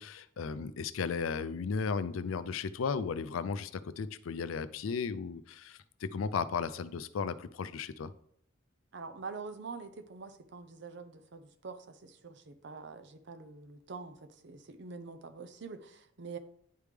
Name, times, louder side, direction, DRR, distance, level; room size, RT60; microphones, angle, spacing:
voice 1, 0.0-8.1, left 5 dB, 85° left, 14 dB, 0.4 m, -35 dB
voice 2, 8.9-16.4, right 4 dB, 60° right, 9 dB, 0.6 m, -45 dB
10.0 x 3.4 x 3.3 m, 0.65 s
head